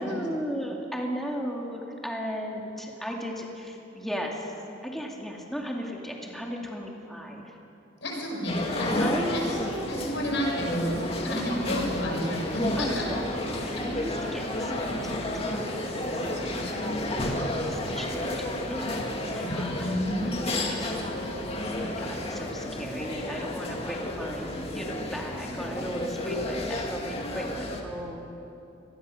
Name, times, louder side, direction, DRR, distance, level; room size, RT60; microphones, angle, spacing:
voice 1, 0.0-4.5 4.8-7.5 9.0-10.2 11.2-11.5 12.8-13.1 13.6-18.8 19.3-19.8 20.4-21.4 21.7-28.2, equal, ahead, -1 dB, 2.4 m, -36 dB
voice 2, 8.0-9.6 9.9-13.0 13.8-13.9 19.4-20.3, equal, 75° left, 0 dB, 6.0 m, -31 dB
sound 1, 8.5-27.8, left 1 dB, 30° left, 2.2 m, -31 dB
sound 2, 10.6-19.6, equal, 65° right, 3.9 m, -48 dB
25.5 x 19.5 x 6.5 m, 2.9 s
head